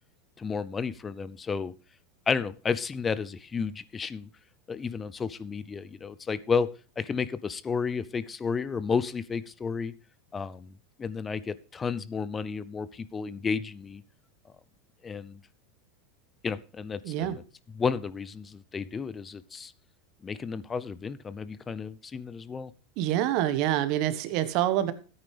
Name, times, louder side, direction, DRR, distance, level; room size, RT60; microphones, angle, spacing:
voice 1, 0.4-1.7 2.3-4.3 4.7-6.7 7.0-9.9 10.3-10.7 11.0-14.0 15.0-15.4 16.4-17.4 17.8-19.7 20.2-22.7, left 5 dB, 25° left, 16 dB, 0.6 m, -32 dB
voice 2, 17.0-17.4 23.0-24.9, right 12 dB, 55° right, 12 dB, 1.3 m, -26 dB
14.0 x 8.9 x 3.4 m, 0.35 s
hypercardioid pair, 90°, 0 cm